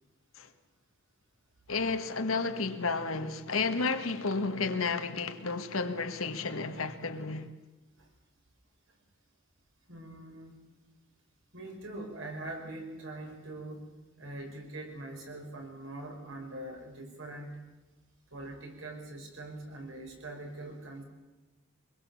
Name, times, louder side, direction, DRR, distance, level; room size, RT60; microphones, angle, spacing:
voice 1, 1.7-7.5, left 4 dB, 75° left, 1.6 m, -32 dB
voice 2, 9.9-10.6 11.5-17.5 18.3-21.0, right 1 dB, 65° right, 5.8 m, -43 dB
24.0 x 21.5 x 7.3 m
head